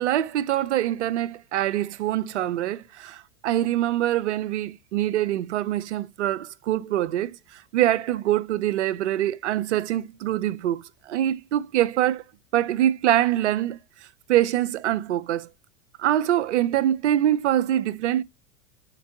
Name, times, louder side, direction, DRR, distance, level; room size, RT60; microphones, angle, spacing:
voice 1, 0.0-7.4 7.7-10.8 11.1-12.2 12.5-13.8 14.3-15.5 16.0-18.2, right 12 dB, 80° right, 0.7 m, -24 dB
5.0 x 4.5 x 4.2 m
hypercardioid pair, 95°, 35 cm